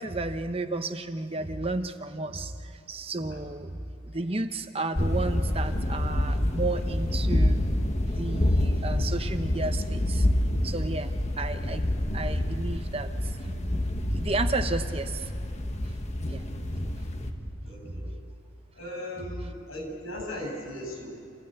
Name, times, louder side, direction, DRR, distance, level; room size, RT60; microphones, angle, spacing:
voice 1, 0.0-7.6 8.1-15.3 15.6-15.7 16.2-16.7 17.4-17.5 17.8-18.0, right 2 dB, 30° right, 8 dB, 0.8 m, -33 dB
sound 1, 4.9-17.3, left 1 dB, 35° left, 1.4 m, -27 dB
voice 2, 17.6-18.1 18.8-21.1, left 1 dB, 90° left, 2 dB, 7.4 m, -38 dB
28.0 x 16.0 x 9.1 m, 2.5 s
head